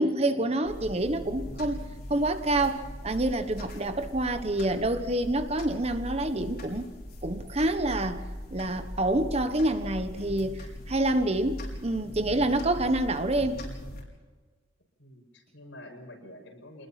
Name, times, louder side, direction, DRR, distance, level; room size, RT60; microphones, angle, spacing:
voice 1, 0.0-6.9 7.2-8.2 8.5-10.6 10.9-13.6, right 1 dB, 30° right, 9 dB, 1.2 m, -27 dB
sound 1, 0.6-14.0, left 1 dB, 50° left, 5.0 m, -40 dB
voice 2, 15.0-16.9, left 1 dB, 70° left, 1 dB, 6.7 m, -48 dB
26.5 x 20.5 x 5.9 m, 1.4 s
head